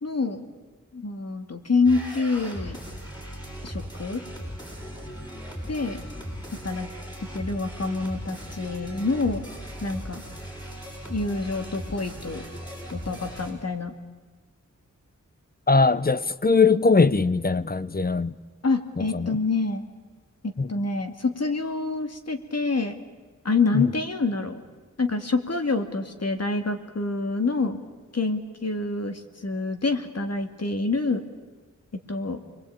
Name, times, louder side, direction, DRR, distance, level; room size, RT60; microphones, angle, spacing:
voice 1, 0.0-0.5 0.9-2.8 3.6-4.2 5.7-6.0 6.6-6.9 7.3-9.4 9.8-10.2 11.1-12.4 12.9-13.9 18.6-19.8 20.4-23.0 23.4-24.6 25.0-27.8 28.1-31.2 32.1-32.4, left 3 dB, 55° left, 2.4 m, -27 dB
sound 1, 1.8-13.5, equal, 15° left, 7.6 m, -38 dB
voice 2, 15.7-18.3 19.1-19.3 20.6-20.7 23.7-23.9, left 4 dB, 30° left, 0.9 m, -20 dB
29.0 x 22.0 x 8.8 m
wide cardioid pair, 75°, 31 cm